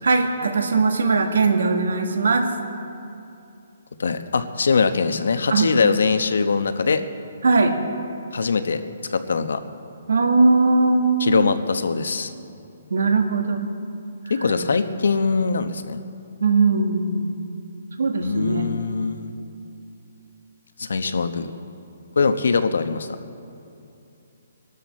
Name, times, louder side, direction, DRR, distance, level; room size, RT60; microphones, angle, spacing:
voice 1, 0.0-2.5 5.5-5.7 7.4-7.8 10.1-11.1 12.9-13.6 14.4-14.6 16.4-17.3 18.0-18.7, right 3 dB, 80° right, 5 dB, 1.7 m, -19 dB
voice 2, 4.0-7.0 8.3-8.8 9.1-9.6 11.2-12.3 14.3-16.0 18.2-19.3 20.8-21.5 22.2-23.1, left 5 dB, 75° left, 10 dB, 1.0 m, -22 dB
23.5 x 12.5 x 4.3 m, 2.7 s
hypercardioid pair, 180°, 0 cm